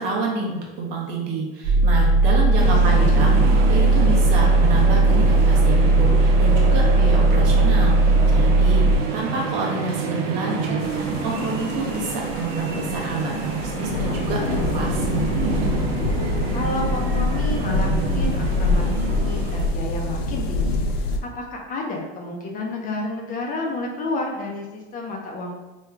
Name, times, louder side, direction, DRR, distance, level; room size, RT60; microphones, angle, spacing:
voice 1, 0.0-15.3, right 3 dB, 60° right, -2 dB, 1.0 m, -28 dB
sound 1, 1.6-9.0, right 2 dB, 35° right, 0.5 m, -17 dB
voice 2, 2.6-3.2 16.5-25.6, left 2 dB, 30° left, 0 dB, 0.5 m, -30 dB
sound 2, 2.6-19.7, right 5 dB, 80° right, 0.7 m, -28 dB
sound 3, 10.8-21.2, left 2 dB, 90° left, 0.5 m, -25 dB
3.1 x 2.2 x 3.4 m, 1.2 s
supercardioid pair, 130°, 30 cm